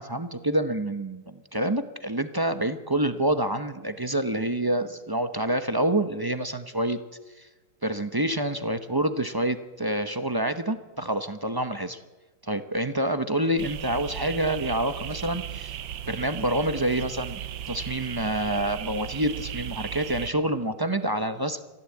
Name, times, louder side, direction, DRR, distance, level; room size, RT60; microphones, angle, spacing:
voice 1, 0.0-7.0 7.4-7.5 7.8-12.0 12.4-15.8 16.1-17.4 17.7-21.6, right 1 dB, 25° right, 9 dB, 0.5 m, -27 dB
sound 1, 13.6-20.3, right 10 dB, 85° right, 1.6 m, -36 dB
23.5 x 15.0 x 8.5 m, 1.2 s
omnidirectional pair, 2.0 m